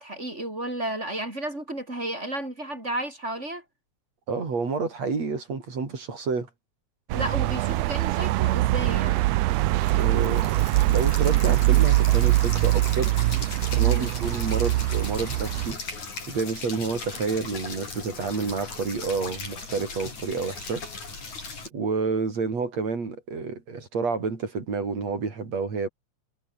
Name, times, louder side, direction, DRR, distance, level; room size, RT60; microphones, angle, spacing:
voice 1, 0.0-3.6 7.1-9.3 13.8-14.1, right 1 dB, 20° right, 5.7 m, -32 dB
voice 2, 4.3-6.5 9.9-13.1 13.7-15.8 16.3-20.8 21.7-25.9, right 4 dB, 55° right, 5.7 m, -29 dB
sound 1, 7.1-15.7, right 18 dB, 75° right, 1.5 m, -23 dB
sound 2, 9.8-21.7, left 4 dB, 65° left, 7.8 m, -38 dB
omnidirectional pair, 3.5 m